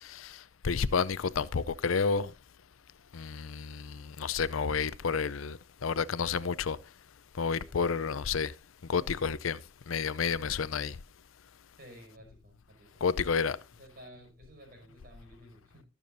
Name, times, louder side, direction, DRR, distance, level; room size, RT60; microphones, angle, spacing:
voice 1, 0.0-2.3 3.1-6.8 7.3-8.5 8.9-9.6 9.9-11.0 13.0-13.6, left 5 dB, 90° left, 0.6 m, -30 dB
voice 2, 11.8-13.2 13.7-15.8, equal, 45° right, 5.6 m, -53 dB
21.0 x 7.0 x 2.6 m
head